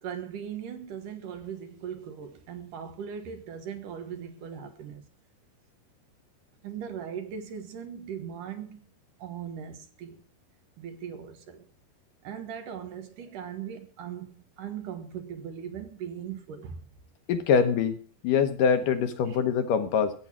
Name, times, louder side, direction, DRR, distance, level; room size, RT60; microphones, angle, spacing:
voice 1, 0.0-5.0 6.6-8.9 9.2-10.2 10.8-11.7 12.2-16.9 19.3-19.4, right 8 dB, 65° right, 2.6 m, -39 dB
voice 2, 17.3-18.0 18.2-20.1, left 6 dB, 70° left, 2.3 m, -24 dB
15.0 x 9.7 x 6.1 m
omnidirectional pair, 4.4 m